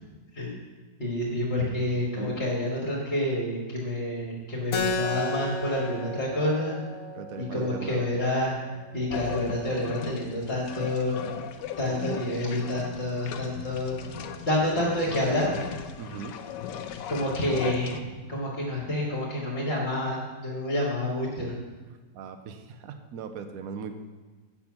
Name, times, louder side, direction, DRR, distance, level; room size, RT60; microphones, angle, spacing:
voice 1, 1.0-6.8 7.4-8.6 8.9-11.2 11.8-13.9 14.5-15.5 16.1-16.2 17.1-21.5, left 1 dB, 35° left, -3 dB, 1.8 m, -28 dB
Keyboard (musical), 4.7-9.8, left 3 dB, 60° left, 1.1 m, -34 dB
voice 2, 7.1-8.1 16.0-16.4 22.1-24.1, right 6 dB, 65° right, 8 dB, 1.1 m, -39 dB
sound 1, 9.1-18.0, left 8 dB, 90° left, 1.3 m, -38 dB
8.5 x 6.9 x 5.9 m, 1.3 s
omnidirectional pair, 1.9 m